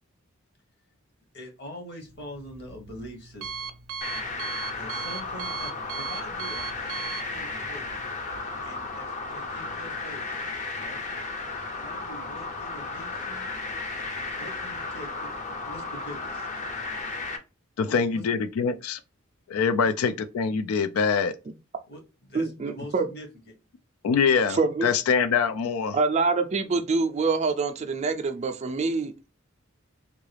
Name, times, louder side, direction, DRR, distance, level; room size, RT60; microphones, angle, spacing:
voice 1, 1.3-3.7 4.8-8.1 8.6-10.4 10.8-11.0 11.7-13.5 14.4-16.5 17.8-18.2 19.8-19.9 21.9-23.5, equal, 50° left, 1.1 m, -44 dB
Alarm, 2.0-8.4, right 6 dB, 85° right, 0.5 m, -38 dB
sound 1, 4.0-17.4, left 3 dB, 35° left, 0.5 m, -34 dB
voice 2, 17.8-19.0 19.5-21.4 24.0-26.0, left 6 dB, 85° left, 0.3 m, -24 dB
voice 3, 22.3-23.1 24.5-24.9 25.9-29.1, right 4 dB, 30° right, 0.4 m, -25 dB
3.7 x 2.3 x 3.2 m
head